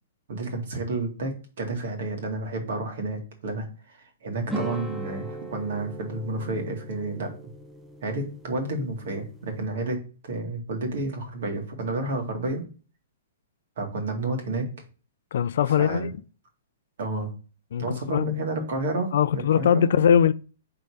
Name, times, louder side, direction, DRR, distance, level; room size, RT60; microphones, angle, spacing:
voice 1, 0.3-7.3 8.0-12.6 13.8-14.7 15.8-16.1 17.0-17.3 17.8-19.9, right 2 dB, 50° right, 2.0 m, -30 dB
sound 1, 4.5-9.7, right 2 dB, 5° right, 0.5 m, -38 dB
voice 2, 15.3-16.1 17.7-18.3 19.1-20.3, left 8 dB, 50° left, 0.4 m, -21 dB
5.5 x 3.9 x 4.7 m
hypercardioid pair, 180°, 0 cm